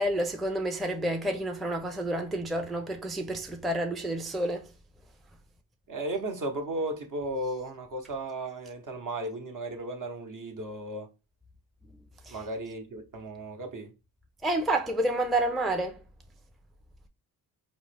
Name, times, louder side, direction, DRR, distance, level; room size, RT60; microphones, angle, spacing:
voice 1, 0.0-4.7 12.2-12.4 14.4-16.0, right 1 dB, ahead, 0.4 m, -29 dB
voice 2, 5.9-11.1 12.3-13.9, right 1 dB, 50° right, 0.9 m, -35 dB
3.8 x 2.1 x 3.3 m
cardioid pair, 55°, 39 cm